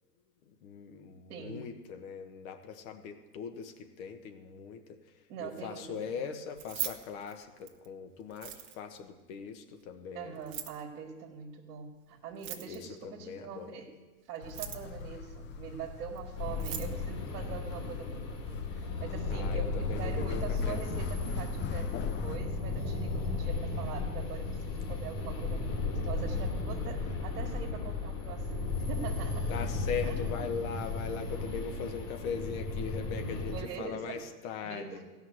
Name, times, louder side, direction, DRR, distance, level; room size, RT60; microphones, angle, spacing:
voice 1, 0.4-10.4 12.7-13.8 19.3-21.2 29.5-35.0, left 6 dB, 60° left, 6 dB, 1.5 m, -40 dB
voice 2, 1.3-1.7 5.3-6.3 10.1-14.0 14.3-28.6 28.9-29.5 30.0-30.5 33.0-34.3 34.6-35.0, right 7 dB, 60° right, 0 dB, 1.9 m, -43 dB
Keys jangling, 6.5-7.9 8.3-9.0 10.3-10.8 12.3-13.0 14.3-15.0 16.2-16.3 16.5-16.9, right 11 dB, 45° right, 1.2 m, -40 dB
sound 1, 14.4-22.4, left 6 dB, 25° left, 0.5 m, -41 dB
sound 2, 16.4-33.6, left 3 dB, 45° left, 2.3 m, -35 dB
16.0 x 5.7 x 7.8 m, 1.2 s
hypercardioid pair, 95°, 47 cm